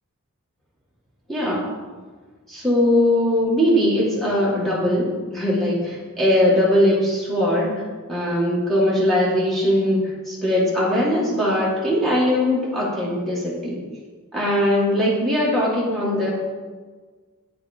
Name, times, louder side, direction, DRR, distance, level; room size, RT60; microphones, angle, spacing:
voice 1, 1.3-1.7 2.5-7.7 8.1-13.8 14.3-16.3, left 1 dB, ahead, -7 dB, 2.0 m, -20 dB
9.2 x 6.1 x 4.4 m, 1.4 s
head